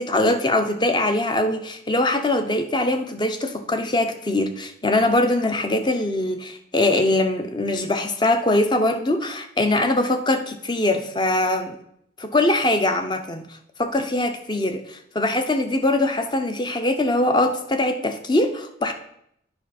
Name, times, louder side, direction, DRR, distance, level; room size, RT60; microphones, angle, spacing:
voice 1, 0.0-11.8 12.2-13.4 13.8-18.9, left 1 dB, 25° left, 6 dB, 0.7 m, -22 dB
9.8 x 5.4 x 4.2 m, 0.73 s
head